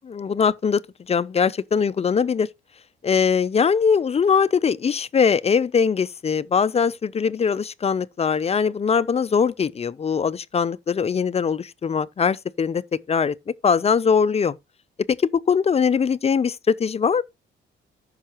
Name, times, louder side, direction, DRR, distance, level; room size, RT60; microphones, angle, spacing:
voice 1, 0.0-0.8 1.1-2.5 3.0-12.8 13.1-13.3 13.6-14.6 15.2-17.2, left 6 dB, 30° left, 0.5 m, -21 dB
14.0 x 5.5 x 3.0 m
cardioid pair, 90°, 20 cm